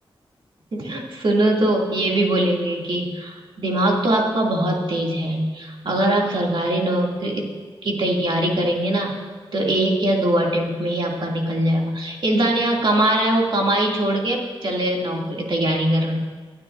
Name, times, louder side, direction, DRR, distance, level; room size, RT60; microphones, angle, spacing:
voice 1, 0.7-7.5 7.8-9.2 9.5-16.2, right 1 dB, 60° right, -1 dB, 2.6 m, -22 dB
23.0 x 12.0 x 2.6 m, 1.5 s
wide cardioid pair, 85°, 9 cm